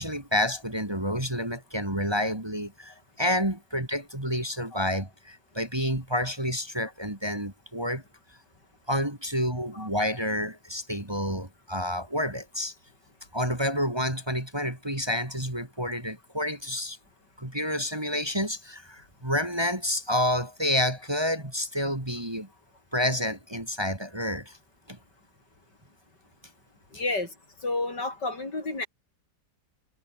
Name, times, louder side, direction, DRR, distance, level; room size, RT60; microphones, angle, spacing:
voice 1, 0.0-8.0 8.9-12.7 13.3-17.0 17.4-22.5 22.9-24.6 24.9-25.0 26.9-27.0, equal, 15° right, 2.9 m, -29 dB
voice 2, 26.9-27.3 27.6-28.9, left 2 dB, 70° left, 6.3 m, -30 dB
omnidirectional pair, 1.9 m